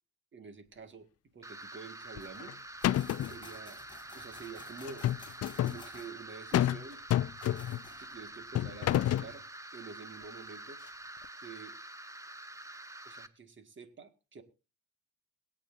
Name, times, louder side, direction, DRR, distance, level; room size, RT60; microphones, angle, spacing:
voice 1, 0.3-1.1 1.3-2.5 2.8-3.8 4.1-5.1 5.6-7.0 8.0-9.5 9.7-10.8 11.4-11.8 13.1-14.4, right 5 dB, 40° right, 9 dB, 1.9 m, -48 dB
sound 1, 1.4-13.3, right 1 dB, 10° right, 0.9 m, -47 dB
moving table, 2.2-2.5 2.8-3.4 4.8-5.8 6.5-6.8 7.1-7.9 8.5-9.3, left 13 dB, 55° left, 0.5 m, -29 dB
sound 2, 2.2-8.8, left 2 dB, 15° left, 2.9 m, -55 dB
22.0 x 8.6 x 2.6 m, 0.30 s
cardioid pair, 90°, 30 cm